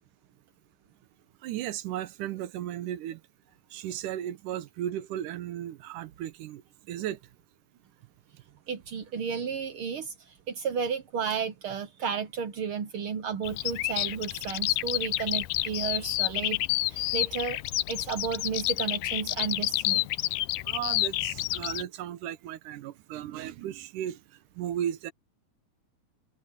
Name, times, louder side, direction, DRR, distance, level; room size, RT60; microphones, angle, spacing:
voice 1, 1.4-3.2 3.7-6.6 6.9-7.2 20.6-24.2 24.6-25.1, right 11 dB, 85° right, 2.5 m, -35 dB
voice 2, 8.7-17.6 17.9-20.1, right 6 dB, 70° right, 1.3 m, -33 dB
Bird vocalization bird call bird song, 13.4-21.8, left 18 dB, 90° left, 2.2 m, -29 dB
omnidirectional pair, 3.6 m